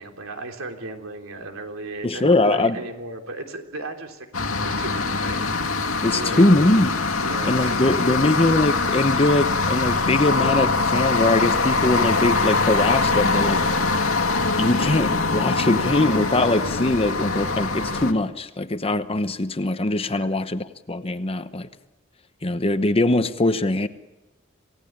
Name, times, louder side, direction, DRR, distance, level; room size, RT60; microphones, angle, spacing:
voice 1, 0.0-5.4 6.1-6.5 7.2-8.2 20.2-20.3, right 2 dB, 70° right, 4 dB, 3.4 m, -35 dB
voice 2, 2.0-2.8 6.0-7.0 7.4-13.6 14.6-21.7 22.4-23.9, left 2 dB, 25° left, 11 dB, 1.0 m, -21 dB
sound 1, 4.3-18.1, left 3 dB, 85° left, 2.1 m, -23 dB
28.0 x 17.5 x 8.8 m, 1.1 s
head